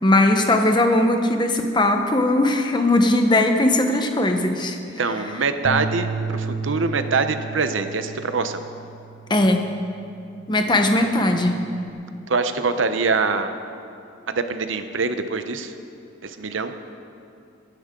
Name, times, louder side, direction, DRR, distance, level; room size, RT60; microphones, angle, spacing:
voice 1, 0.0-4.8 9.3-9.6 10.5-11.6, left 1 dB, 25° left, 5 dB, 1.0 m, -19 dB
voice 2, 5.0-8.6 12.3-13.5 14.3-15.7 16.2-16.7, right 4 dB, 90° right, 9 dB, 0.8 m, -24 dB
sound 1, 5.6-11.9, right 4 dB, 55° right, 0.7 m, -33 dB
23.5 x 10.5 x 3.8 m, 2.5 s
head